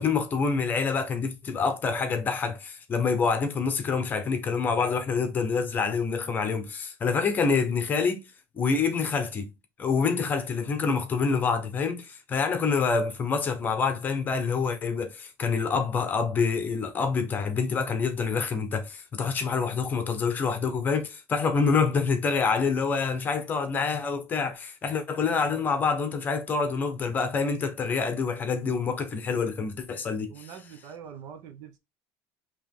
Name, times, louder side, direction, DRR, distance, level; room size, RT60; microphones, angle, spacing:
voice 1, 0.0-8.2 8.5-9.5 9.8-30.5, left 5 dB, 25° left, 0.9 m, -27 dB
voice 2, 30.3-31.8, right 8 dB, 55° right, 0.8 m, -44 dB
4.8 x 3.0 x 3.6 m
cardioid pair, 160°, 7 cm